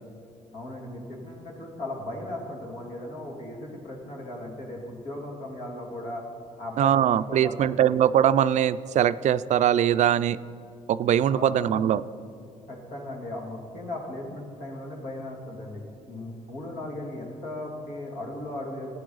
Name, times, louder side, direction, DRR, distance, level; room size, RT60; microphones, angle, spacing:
voice 1, 0.5-6.2 6.6-7.9 11.3-11.7 12.7-15.8 16.1-19.0, left 1 dB, 85° left, -1 dB, 2.3 m, -37 dB
voice 2, 6.8-10.4 10.9-12.0, right 10 dB, 60° right, 15 dB, 0.4 m, -22 dB
15.0 x 9.4 x 3.9 m, 2.6 s
cardioid pair, 75°, 13 cm